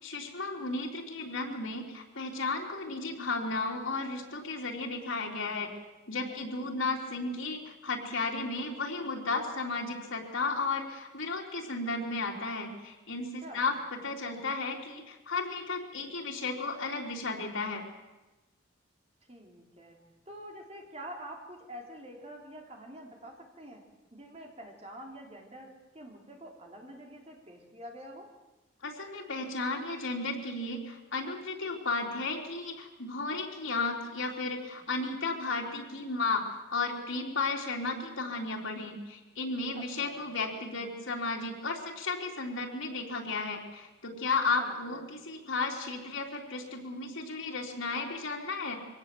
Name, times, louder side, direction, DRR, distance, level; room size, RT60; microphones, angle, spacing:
voice 1, 0.0-5.7 6.1-17.8 28.8-48.8, left 3 dB, 85° left, -1 dB, 3.8 m, -34 dB
voice 2, 19.3-20.0 20.3-23.8 24.1-28.3 39.7-40.2 44.6-45.0, equal, 30° right, 1 dB, 3.6 m, -47 dB
23.5 x 17.5 x 7.8 m, 1.1 s
head